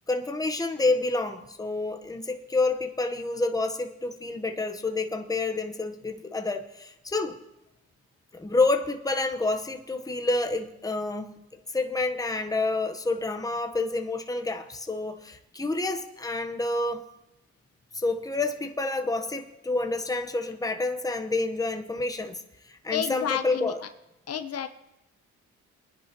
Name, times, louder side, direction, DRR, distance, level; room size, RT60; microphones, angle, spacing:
voice 1, 0.1-7.4 8.3-11.4 11.7-17.1 17.9-22.4 22.7-23.8, left 3 dB, 10° left, 1.1 m, -28 dB
voice 2, 22.9-23.7 24.3-24.7, left 9 dB, 55° left, 0.8 m, -30 dB
22.5 x 10.5 x 3.0 m
cardioid pair, 90°, 30 cm